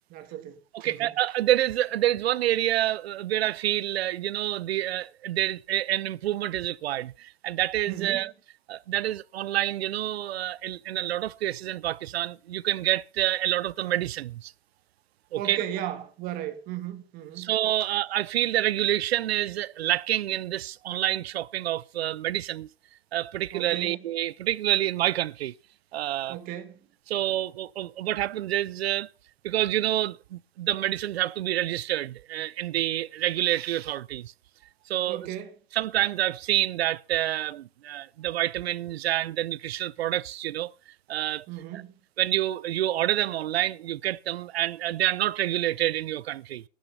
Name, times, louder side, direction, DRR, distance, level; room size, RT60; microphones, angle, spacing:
voice 1, 0.1-1.1 7.9-8.2 15.3-17.5 23.5-24.0 26.3-26.8 35.1-35.5 41.5-41.9, right 12 dB, 30° right, 1.9 m, -36 dB
voice 2, 0.7-8.3 8.7-14.5 15.3-15.6 17.4-22.7 23.1-25.5 25.9-26.4 27.1-29.1 29.4-34.3 34.9-35.3 35.7-40.7 41.1-41.5 41.7-41.8 42.2-46.6, right 13 dB, 85° right, 0.6 m, -27 dB
12.0 x 10.5 x 5.5 m
supercardioid pair, 160°, 30 cm